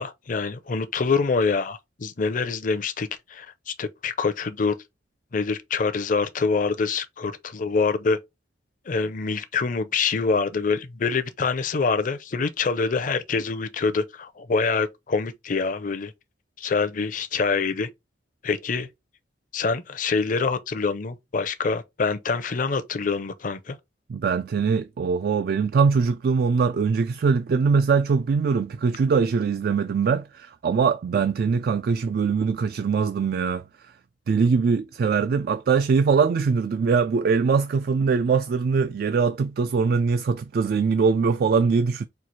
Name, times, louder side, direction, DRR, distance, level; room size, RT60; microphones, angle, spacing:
voice 1, 0.0-4.8 5.3-8.2 8.9-16.1 16.6-17.9 18.4-18.9 19.5-23.8, left 4 dB, 50° left, 0.5 m, -25 dB
voice 2, 24.1-33.6 34.3-42.1, right 5 dB, 55° right, 0.3 m, -22 dB
4.5 x 2.4 x 4.1 m
head